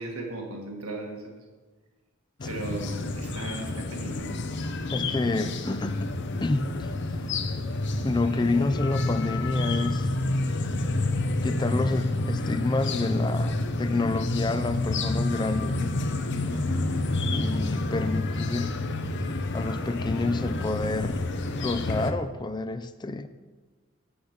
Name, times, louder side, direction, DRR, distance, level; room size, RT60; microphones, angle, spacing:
voice 1, 0.0-1.4 2.4-4.5 16.5-16.9, right 2 dB, 85° right, 1 dB, 1.4 m, -37 dB
sound 1, 2.4-22.1, left 2 dB, 55° left, 0.7 m, -29 dB
voice 2, 4.9-6.1 6.4-6.9 8.0-10.1 11.4-15.8 17.3-18.8 19.5-23.3, left 2 dB, 20° left, 11 dB, 0.4 m, -29 dB
8.5 x 6.8 x 5.9 m, 1.3 s
head